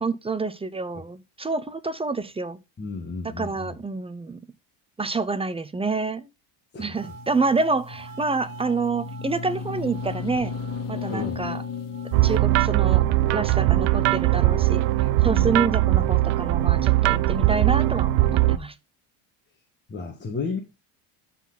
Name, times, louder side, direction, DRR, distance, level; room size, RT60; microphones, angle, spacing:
voice 1, 0.0-2.6 3.2-4.4 5.0-6.3 6.8-10.5 10.9-11.6 12.2-13.1 13.3-14.8 15.2-18.8, right 4 dB, 15° right, 0.5 m, -27 dB
voice 2, 2.8-3.8 6.7-7.1 11.1-11.5 15.2-15.5 19.9-20.6, left 4 dB, 25° left, 1.6 m, -33 dB
sound 1, 6.9-12.4, left 4 dB, 45° left, 2.0 m, -34 dB
sound 2, 12.1-18.6, right 16 dB, 90° right, 0.8 m, -20 dB
12.5 x 4.2 x 4.0 m
cardioid pair, 130°, 47 cm